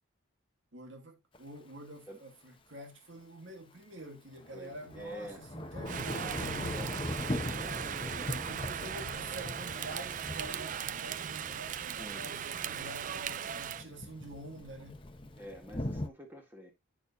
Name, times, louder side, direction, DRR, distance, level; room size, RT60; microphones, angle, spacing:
voice 1, 0.7-6.9 8.5-15.0, right 1 dB, 65° right, 2.3 m, -47 dB
Thunder / Rain, 1.3-1.4 4.4-16.1, left 1 dB, 25° left, 0.9 m, -41 dB
voice 2, 4.5-5.5 7.3-8.2 11.9-12.2 15.4-16.7, equal, 10° right, 2.0 m, -47 dB
Rain, 5.9-13.8, right 8 dB, 40° right, 0.3 m, -38 dB
9.7 x 6.5 x 2.7 m
head